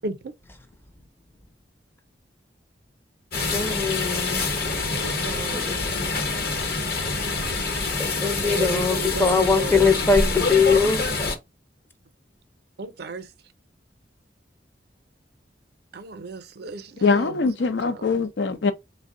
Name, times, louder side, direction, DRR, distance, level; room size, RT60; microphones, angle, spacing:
sound 1, 3.3-11.4, left 3 dB, 60° left, 0.9 m, -26 dB
voice 1, 3.5-4.5 5.5-5.7 8.0-11.0, left 5 dB, 15° left, 0.5 m, -22 dB
voice 2, 4.9-5.7 8.2-10.1 12.8-13.3 15.9-17.3 17.8-18.2, right 3 dB, 60° right, 0.5 m, -35 dB
voice 3, 17.0-18.7, left 4 dB, 85° left, 0.5 m, -22 dB
3.4 x 2.1 x 3.7 m
head